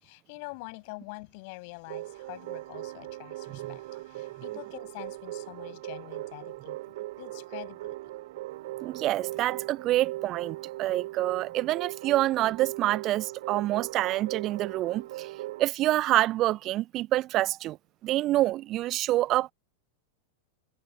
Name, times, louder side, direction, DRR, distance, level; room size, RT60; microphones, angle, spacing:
voice 1, 0.0-8.0, left 31 dB, 45° left, 6.8 m, -45 dB
sound 1, 1.9-15.7, right 17 dB, 55° right, 2.5 m, -39 dB
voice 2, 8.8-15.3 15.6-17.8 18.0-19.5, right 15 dB, 35° right, 0.7 m, -27 dB
figure-of-eight pair, 90°, 0 cm